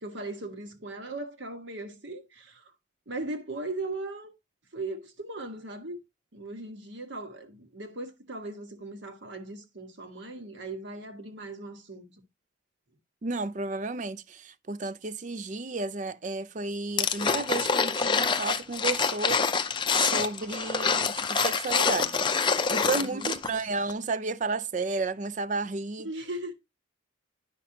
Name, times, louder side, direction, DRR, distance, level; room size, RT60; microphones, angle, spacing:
voice 1, 0.0-2.7 3.1-4.3 4.7-6.0 6.3-12.1 22.9-23.4 26.0-26.5, right 2 dB, 60° right, 1.5 m, -38 dB
voice 2, 13.2-19.4 20.0-22.3 22.7-26.1, right 3 dB, 35° right, 0.4 m, -32 dB
sound 1, 17.0-23.6 23.9-24.0, left 5 dB, 25° left, 0.5 m, -26 dB
10.0 x 5.9 x 2.8 m
head